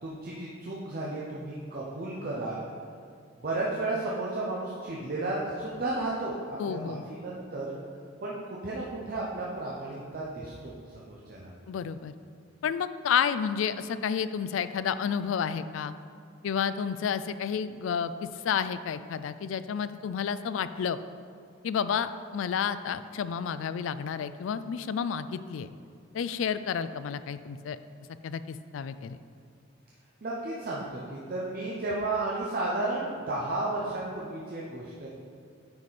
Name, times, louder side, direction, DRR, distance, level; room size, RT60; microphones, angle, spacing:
voice 1, 0.0-2.6 3.4-7.7 8.2-11.5 30.2-35.1, right 2 dB, 50° right, -5 dB, 0.9 m, -33 dB
voice 2, 6.6-7.0 11.7-12.1 12.6-15.9 16.4-21.0 21.6-25.7 26.1-27.8 28.2-29.2, left 7 dB, 80° left, 13 dB, 0.3 m, -30 dB
9.5 x 4.9 x 4.2 m, 2.3 s
head